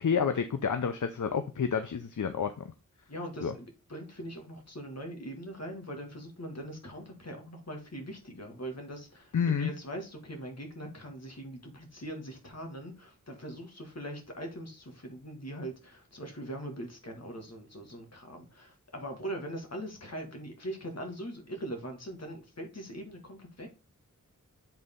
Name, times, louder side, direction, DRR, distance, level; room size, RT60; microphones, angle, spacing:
voice 1, 0.0-2.5 3.4-3.5 9.3-9.7, left 6 dB, 65° left, 0.7 m, -29 dB
voice 2, 3.1-23.7, right 1 dB, 50° left, 2.0 m, -41 dB
7.8 x 3.9 x 3.7 m
wide cardioid pair, 55°, 33 cm